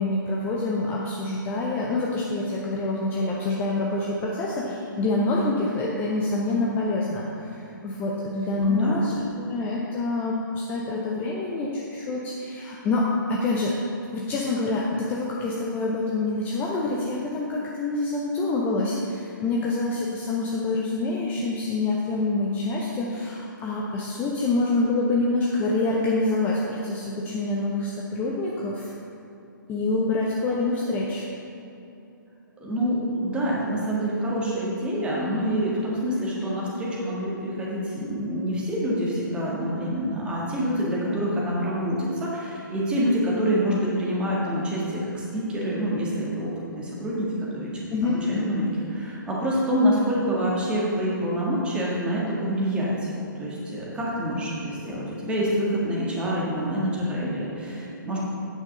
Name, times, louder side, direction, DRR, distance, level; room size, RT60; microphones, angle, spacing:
voice 1, 0.0-13.8 14.1-28.9 29.7-31.3 47.9-48.5, left 2 dB, 15° left, -3 dB, 0.7 m, -26 dB
voice 2, 8.6-9.0 32.6-46.5 46.8-47.7 48.0-53.1 53.4-58.2, equal, 10° right, -5 dB, 1.7 m, -26 dB
9.2 x 6.0 x 5.4 m, 2.8 s
figure-of-eight pair, 130°, 11 cm